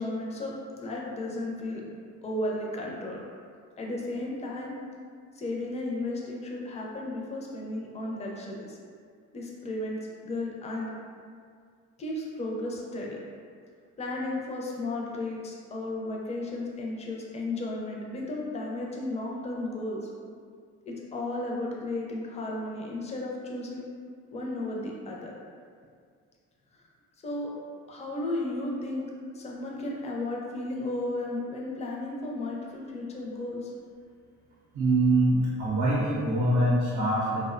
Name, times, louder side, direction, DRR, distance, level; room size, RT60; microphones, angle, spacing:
voice 1, 0.0-1.9 2.2-3.2 3.8-4.8 5.3-8.8 9.3-10.9 12.0-13.2 14.0-20.1 20.9-23.8 24.3-25.3 27.2-27.5 27.9-29.1 29.3-33.7, left 2 dB, 25° left, -2 dB, 0.4 m, -34 dB
voice 2, 34.7-37.5, right 1 dB, 70° right, -6 dB, 0.5 m, -24 dB
2.5 x 2.0 x 2.4 m, 2.1 s
cardioid pair, 90°, 30 cm